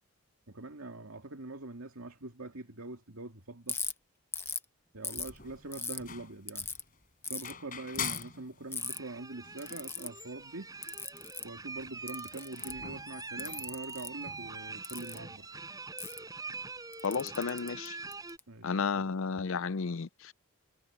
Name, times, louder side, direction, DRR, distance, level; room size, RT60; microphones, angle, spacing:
voice 1, 0.5-3.8 4.9-6.7 7.3-10.7 11.4-15.5 18.5-19.1, right 2 dB, 80° right, 2.4 m, -44 dB
Ratchet pawl, 3.7-3.9 4.3-4.6 5.0-6.0 6.5-6.8 7.2-7.5 7.9-8.2 8.7-9.0 9.6-10.1 10.8-11.5 12.1-12.8 13.4-14.1 14.8-15.2 16.0-16.2 16.9-18.4, left 5 dB, 10° left, 0.7 m, -38 dB
sound 1, 5.3-8.9 9.2-9.3 9.4-10.9 11.4-11.5 11.7-14.8, left 7 dB, 40° left, 5.3 m, -45 dB
sound 2, 8.8-18.4, right 3 dB, 15° right, 5.4 m, -44 dB
voice 2, 17.0-17.9 18.6-20.3, left 5 dB, 65° left, 0.5 m, -32 dB
head